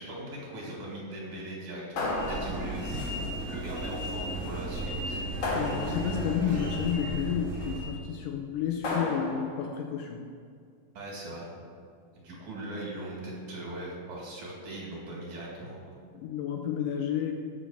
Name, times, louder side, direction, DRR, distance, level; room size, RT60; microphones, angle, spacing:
voice 1, 0.0-5.2 10.9-11.5 12.1-15.8, right 1 dB, 60° right, -3 dB, 2.9 m, -40 dB
sound 1, 2.0-3.0 5.4-6.4 8.8-9.7, left 2 dB, 65° left, 3.0 m, -33 dB
sound 2, 2.1-8.0, right 1 dB, 35° right, 1.2 m, -35 dB
voice 2, 5.5-10.2 16.1-17.3, left 8 dB, 80° left, 3 dB, 2.0 m, -31 dB
6.2 x 6.1 x 6.9 m, 2.2 s
omnidirectional pair, 4.1 m